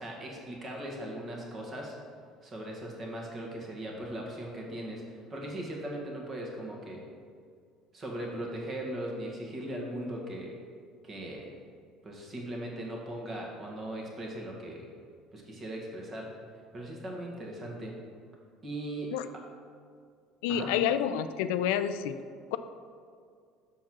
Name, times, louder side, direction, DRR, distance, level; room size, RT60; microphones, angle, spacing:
voice 1, 0.0-2.0 2.4-5.0 5.3-7.0 7.9-10.5 11.0-11.5 12.0-14.9 15.3-16.3 16.7-17.9 18.6-19.1 20.5-20.7, right 1 dB, 30° right, -1 dB, 1.6 m, -39 dB
voice 2, 20.4-22.2 22.5-22.6, left 9 dB, 90° left, 11 dB, 0.3 m, -28 dB
6.0 x 4.6 x 6.1 m, 2.2 s
cardioid pair, 130°, 0 cm